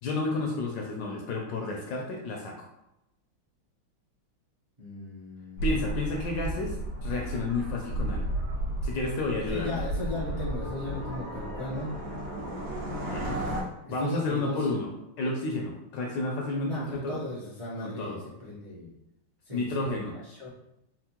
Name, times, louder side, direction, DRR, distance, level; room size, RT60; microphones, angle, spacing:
voice 1, 0.0-2.7 5.6-6.8 7.0-8.2 8.8-9.8 13.0-13.4 13.9-14.9 15.2-17.2 17.8-18.2 19.5-20.1, left 2 dB, 75° left, 0 dB, 1.1 m, -31 dB
voice 2, 4.8-5.7 9.5-11.9 13.2-13.5 13.8-14.7 16.6-18.9 19.5-20.0 20.3-20.5, left 2 dB, 45° right, -8 dB, 0.4 m, -36 dB
sound 1, 5.6-13.6, right 1 dB, 90° right, 2.0 m, -33 dB
4.4 x 2.1 x 2.8 m, 0.88 s
omnidirectional pair, 2.3 m